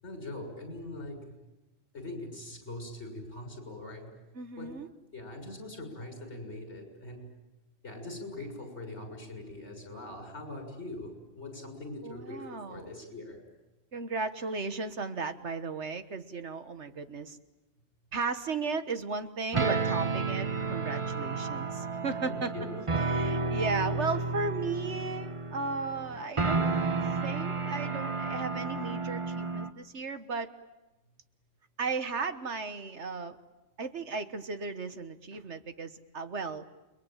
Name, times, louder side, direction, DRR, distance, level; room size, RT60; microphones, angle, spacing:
voice 1, 0.0-1.2 1.9-4.1 4.6-4.7 5.1-7.3 7.8-12.4 12.7-13.4 22.2-22.9, left 2 dB, 60° left, 4 dB, 7.1 m, -42 dB
voice 2, 4.3-4.9 12.0-12.9 13.9-17.4 18.1-22.7 23.0-26.7 27.2-30.5 31.8-33.4 33.8-36.7, right 4 dB, 60° right, 10 dB, 1.6 m, -35 dB
sound 1, 19.5-29.7, right 4 dB, 25° right, 1.0 m, -31 dB
29.5 x 22.5 x 9.0 m, 1.0 s
omnidirectional pair, 1.3 m